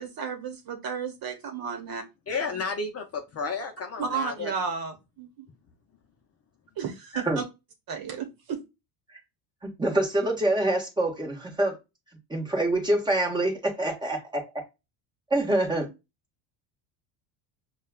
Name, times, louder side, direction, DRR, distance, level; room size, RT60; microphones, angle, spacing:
voice 1, 0.0-2.0 4.0-5.3 6.8-7.4 7.9-8.6, right 6 dB, 45° right, 1.3 m, -33 dB
voice 2, 2.3-4.5, left 4 dB, 30° left, 0.7 m, -32 dB
voice 3, 9.6-11.8 12.3-14.2 15.3-15.9, right 1 dB, 10° right, 1.4 m, -25 dB
5.4 x 2.4 x 2.3 m
supercardioid pair, 110°, 49 cm